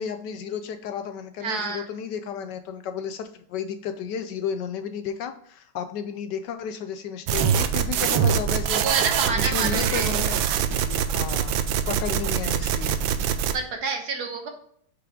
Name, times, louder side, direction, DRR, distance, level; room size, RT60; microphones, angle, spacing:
voice 1, 0.0-8.8 9.2-10.4 10.7-11.5 11.9-13.0, left 7 dB, 70° left, 9 dB, 1.2 m, -33 dB
voice 2, 1.4-1.9 8.8-10.1 13.5-14.5, right 4 dB, 60° right, 4 dB, 1.5 m, -28 dB
sound 1, 7.3-13.5, right 8 dB, 85° right, 1.4 m, -24 dB
4.9 x 4.8 x 4.9 m, 0.63 s
omnidirectional pair, 2.1 m